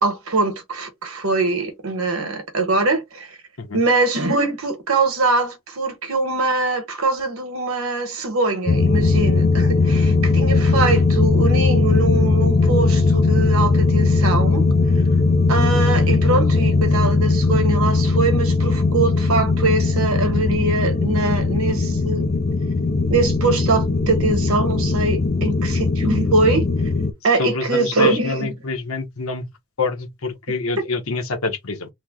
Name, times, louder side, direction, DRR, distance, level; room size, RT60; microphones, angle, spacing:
voice 1, 0.0-3.4 3.7-14.6 15.5-22.3 23.1-26.7 27.2-28.5, right 3 dB, 90° right, 1.1 m, -22 dB
sound 1, 8.7-27.1, left 3 dB, 45° left, 0.5 m, -18 dB
voice 2, 27.4-29.5 29.8-31.9, left 4 dB, 85° left, 0.9 m, -26 dB
3.1 x 2.2 x 3.6 m
head